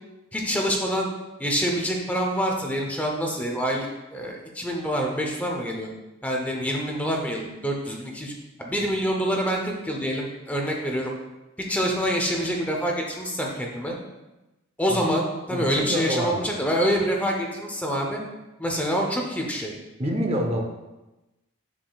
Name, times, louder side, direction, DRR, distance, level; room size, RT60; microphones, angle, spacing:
voice 1, 0.3-1.1 1.4-5.9 6.2-8.3 8.6-11.1 11.7-14.0 14.8-18.2 18.6-19.7, equal, 5° left, 0 dB, 0.7 m, -26 dB
voice 2, 15.5-16.5 20.0-20.6, equal, 30° right, 2 dB, 0.7 m, -27 dB
7.3 x 7.1 x 2.4 m, 1.0 s
head